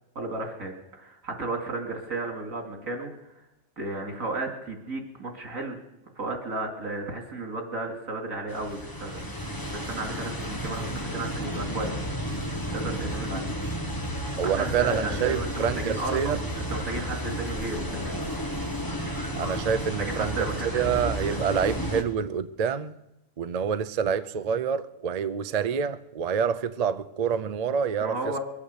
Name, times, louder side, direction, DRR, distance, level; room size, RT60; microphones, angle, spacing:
voice 1, 0.1-3.1 3.8-5.8 6.2-12.0 12.7-13.5 14.4-16.4 16.7-18.2 20.1-21.4 28.0-28.4, right 2 dB, 75° right, 2.9 m, -34 dB
sound 1, 8.5-22.0, equal, 15° left, 1.2 m, -32 dB
voice 2, 14.4-16.4 19.3-20.4 20.7-23.0 23.4-28.4, right 7 dB, 50° right, 0.4 m, -27 dB
22.5 x 8.6 x 6.7 m
omnidirectional pair, 1.4 m